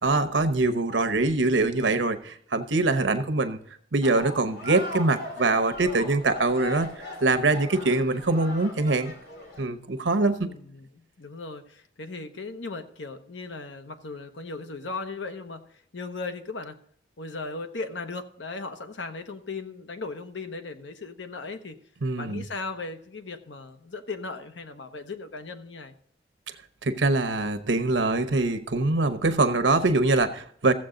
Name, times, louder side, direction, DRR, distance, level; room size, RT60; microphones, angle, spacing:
voice 1, 0.0-3.6 3.9-6.9 7.2-9.1 9.6-10.5 22.0-22.5 26.8-30.7, right 2 dB, 85° right, 10 dB, 1.0 m, -23 dB
voice 2, 3.0-3.3 10.4-15.7 15.9-16.8 17.2-21.8 22.2-25.9, left 3 dB, 85° left, 8 dB, 1.0 m, -37 dB
sound 1, 4.0-9.6, left 1 dB, 55° left, 2.6 m, -39 dB
15.0 x 7.7 x 3.8 m, 0.65 s
head